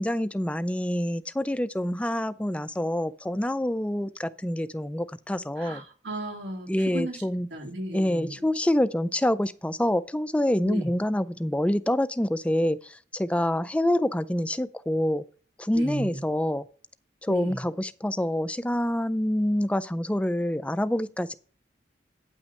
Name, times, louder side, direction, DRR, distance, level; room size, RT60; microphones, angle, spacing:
voice 1, 0.0-5.8 6.7-7.5 7.9-15.2 15.6-16.7 17.2-21.3, left 1 dB, 5° left, 0.3 m, -26 dB
voice 2, 5.6-7.2 7.5-8.3 10.7-10.9 15.7-16.2 17.3-17.6, right 1 dB, 80° right, 3.0 m, -35 dB
9.2 x 5.9 x 5.6 m
head